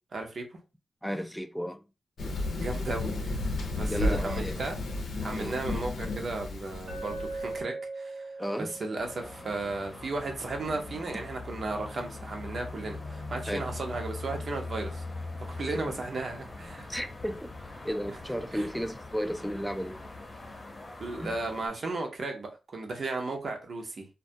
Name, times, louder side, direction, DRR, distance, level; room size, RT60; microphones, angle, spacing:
voice 1, 0.1-0.6 2.5-4.7 5.2-15.0 15.5-16.9 18.5-18.7 21.0-24.1, right 3 dB, 60° right, 0.7 m, -35 dB
voice 2, 1.0-1.8 3.9-4.6 5.3-5.5 8.4-8.7 13.5-13.6 15.7-15.8 16.9-17.5 17.8-20.0 21.2-21.4, equal, ahead, 0.4 m, -33 dB
Thunder, 2.2-7.6, left 2 dB, 80° left, 0.6 m, -33 dB
Glass, 6.9-11.0, right 3 dB, 90° right, 0.9 m, -41 dB
sound 1, 9.0-21.7, left 3 dB, 35° left, 0.7 m, -41 dB
2.2 x 2.1 x 2.6 m
cardioid pair, 55°, 0 cm